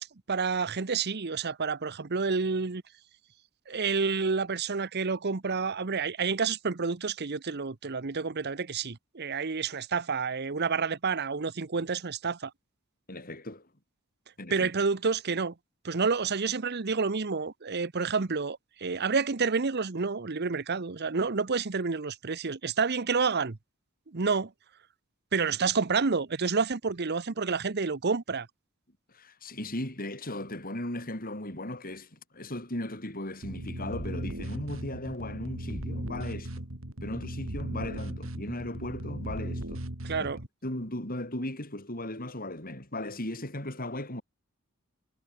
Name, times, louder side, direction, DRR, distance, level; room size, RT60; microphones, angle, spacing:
voice 1, 0.3-2.8 3.7-12.5 14.5-15.5 15.8-23.6 24.1-24.5 25.3-28.5 40.0-40.4, right 5 dB, 50° right, 0.9 m, -29 dB
voice 2, 13.1-13.6 14.4-14.7 29.1-36.7 37.0-39.8 40.2-40.3 40.6-44.2, left 1 dB, 40° left, 7.3 m, -37 dB
sound 1, 33.4-40.5, right 1 dB, 65° right, 3.2 m, -37 dB
head